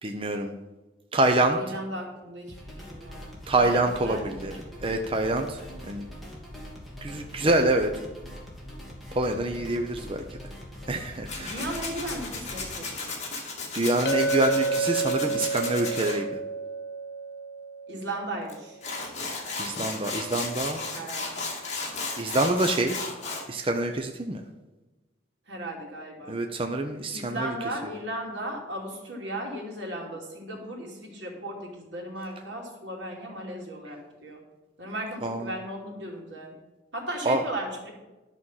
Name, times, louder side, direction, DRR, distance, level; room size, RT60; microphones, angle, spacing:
voice 1, 0.0-0.5 1.1-1.6 3.5-4.5 4.8-5.6 5.9-6.1 7.0-7.9 9.1-10.2 10.9-11.6 13.7-16.3 19.6-20.8 22.2-23.0 23.5-24.4 26.3-27.5 35.2-35.5 37.2-37.4, right 2 dB, 30° right, 5 dB, 0.7 m, -26 dB
voice 2, 1.6-2.6 2.9-3.2 3.6-4.6 11.4-13.2 17.9-18.8 20.9-21.3 25.5-26.4 27.1-34.4 34.8-36.5 36.9-37.9, right 1 dB, 85° right, -1 dB, 2.7 m, -36 dB
sound 1, 2.5-12.8, equal, ahead, 2.6 m, -43 dB
Tools, 11.3-16.2 18.5-18.6 18.8-23.4, left 3 dB, 40° left, 2.2 m, -34 dB
Chink clink, 14.1-18.5, right 3 dB, 65° left, 0.6 m, -30 dB
11.5 x 6.2 x 5.6 m, 1.1 s
head